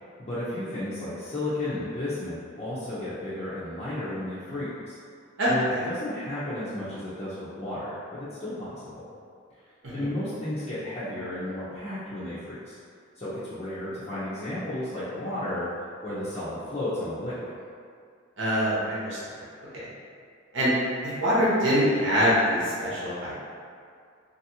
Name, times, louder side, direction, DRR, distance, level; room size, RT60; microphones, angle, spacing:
voice 1, 0.2-5.0 5.5-9.1 9.9-12.8 13.1-15.7 16.0-17.5, left 1 dB, 30° left, -13 dB, 0.6 m, -33 dB
voice 2, 5.4-5.8 10.0-10.1 18.4-19.2 19.7-19.8 20.5-20.7 21.0-23.3, equal, 65° right, -9 dB, 0.9 m, -24 dB
2.9 x 2.7 x 2.7 m, 2.2 s
head